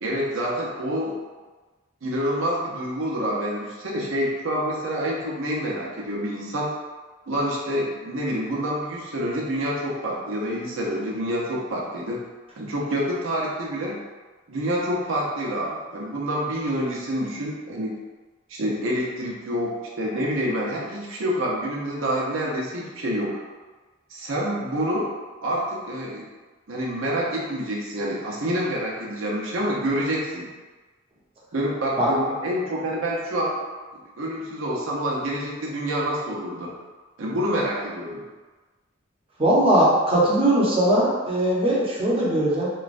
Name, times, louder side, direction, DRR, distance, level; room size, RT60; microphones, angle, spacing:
voice 1, 0.0-1.1 2.0-6.7 7.3-12.2 12.6-14.0 14.5-17.9 18.5-23.4 24.1-25.1 25.4-26.2 26.7-30.5 31.5-33.6 34.2-36.7 37.2-38.2, equal, 85° right, -4 dB, 0.6 m, -27 dB
voice 2, 39.4-42.7, right 1 dB, 30° right, -6 dB, 0.6 m, -20 dB
3.0 x 2.2 x 2.5 m, 1.3 s
head